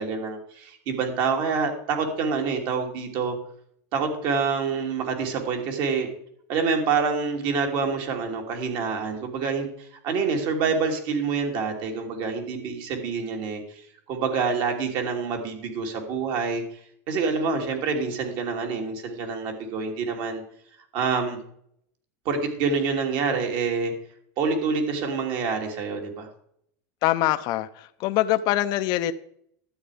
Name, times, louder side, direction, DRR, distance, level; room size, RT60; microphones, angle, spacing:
voice 1, 0.0-3.4 3.9-6.1 6.5-9.7 10.0-13.8 14.1-16.6 17.1-20.4 20.9-21.4 22.2-23.9 24.4-26.3, right 5 dB, 55° right, 3 dB, 3.0 m, -27 dB
voice 2, 27.0-29.1, left 14 dB, 50° left, 10 dB, 0.7 m, -24 dB
12.5 x 9.0 x 5.1 m, 0.68 s
supercardioid pair, 135°, 9 cm